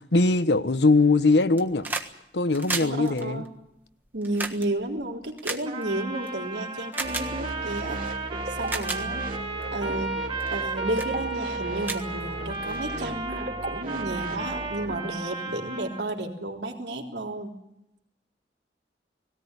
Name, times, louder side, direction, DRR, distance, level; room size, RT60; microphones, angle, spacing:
voice 1, 0.0-1.9 2.3-3.4, left 3 dB, 80° left, 1.1 m, -21 dB
sound 1, 1.4-2.1 2.4-6.3 6.9-7.3 8.1-8.2 8.6-9.0 9.6-9.8 10.4-10.7 11.0-11.1 11.5-11.6 11.8-12.8 13.9-14.0, right 3 dB, 10° right, 1.4 m, -33 dB
voice 2, 2.8-3.5 4.1-8.0 8.5-9.2 9.7-10.2 10.5-17.5, right 1 dB, 85° right, 3.5 m, -32 dB
Trumpet, 5.6-16.1, right 3 dB, 35° right, 2.6 m, -34 dB
sound 2, 7.0-15.0, right 1 dB, 50° right, 3.2 m, -36 dB
19.0 x 17.5 x 9.7 m
head